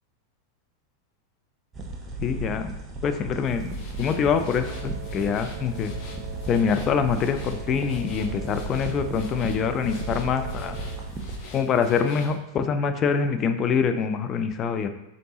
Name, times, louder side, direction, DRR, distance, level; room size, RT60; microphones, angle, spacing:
sound 1, 1.7-11.4, right 2 dB, 25° right, 0.6 m, -35 dB
voice 1, 2.2-2.7 3.0-5.9 6.5-10.8 11.5-14.9, left 6 dB, 30° left, 8 dB, 0.3 m, -25 dB
sound 2, 3.4-12.4, left 4 dB, 45° left, 0.7 m, -43 dB
Wind instrument woodwind instrument, 4.4-11.2, right 11 dB, 50° right, 0.9 m, -44 dB
3.8 x 3.4 x 2.8 m, 0.93 s
figure-of-eight pair, 90°, 0 cm